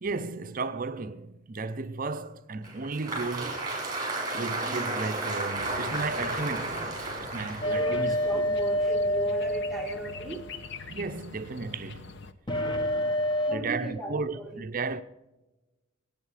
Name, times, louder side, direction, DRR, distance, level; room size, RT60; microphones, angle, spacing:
voice 1, 0.0-3.7 4.3-8.5 10.9-12.1 13.5-15.0, right 3 dB, 40° right, 0.6 m, -34 dB
Applause, 2.6-8.9, right 2 dB, 20° right, 4.2 m, -33 dB
sound 1, 5.5-12.3, left 4 dB, 55° left, 0.9 m, -45 dB
sound 2, 7.6-10.6 12.5-13.6, left 1 dB, 25° left, 1.2 m, -27 dB
voice 2, 7.6-10.5 10.9-11.0 12.6-13.0 13.5-14.6, right 2 dB, ahead, 1.7 m, -38 dB
22.5 x 8.9 x 4.9 m
head